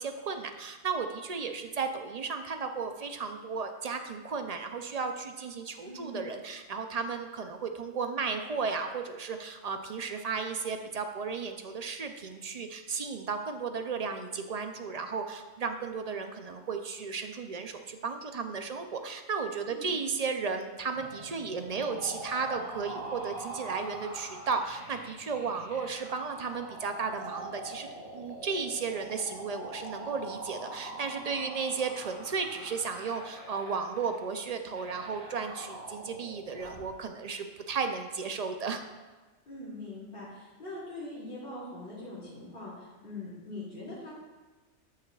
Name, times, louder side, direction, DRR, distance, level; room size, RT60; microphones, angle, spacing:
voice 1, 0.0-38.8, right 5 dB, 50° right, 6 dB, 0.5 m, -34 dB
voice 2, 5.8-6.2 19.7-19.9 39.5-44.1, left 2 dB, 50° left, -8 dB, 2.8 m, -42 dB
sound 1, 20.9-36.9, right 2 dB, 85° right, 2.9 m, -44 dB
13.5 x 6.5 x 2.4 m, 1.3 s
omnidirectional pair, 1.2 m